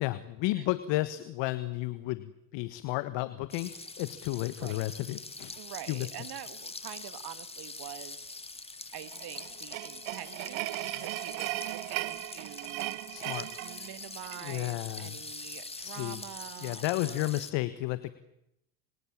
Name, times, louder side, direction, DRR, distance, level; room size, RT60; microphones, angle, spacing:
voice 1, 0.0-5.6 5.9-6.1 13.1-13.5 14.4-15.2 15.8-16.2 16.6-18.1, left 18 dB, 65° left, 13 dB, 1.6 m, -33 dB
sound 1, 3.5-17.5, left 3 dB, 10° left, 2.1 m, -44 dB
voice 2, 5.6-8.2 8.9-13.0 13.6-17.5, right 13 dB, 50° right, 13 dB, 2.0 m, -46 dB
sound 2, 9.1-14.6, right 19 dB, 70° right, 1.5 m, -37 dB
27.5 x 24.5 x 7.5 m, 0.82 s
hypercardioid pair, 85°, 48 cm